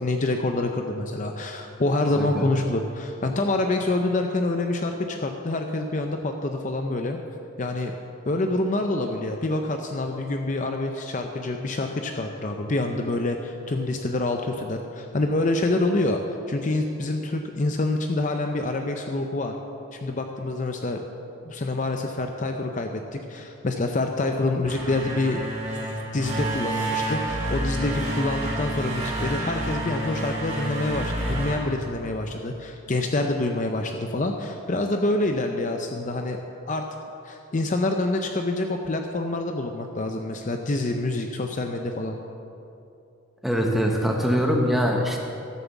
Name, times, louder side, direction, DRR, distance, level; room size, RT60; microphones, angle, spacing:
voice 1, 0.0-7.2 7.6-7.9 8.2-16.2 16.5-19.5 19.9-21.0 21.4-25.4 26.1-36.4 36.7-36.8 37.2-42.2, left 2 dB, 35° left, 4 dB, 0.6 m, -26 dB
voice 2, 2.1-2.5 43.4-45.2, equal, ahead, 0 dB, 1.2 m, -23 dB
sound 1, 24.5-32.5, right 1 dB, 30° right, 2.1 m, -29 dB
12.5 x 7.2 x 7.2 m, 2.8 s
head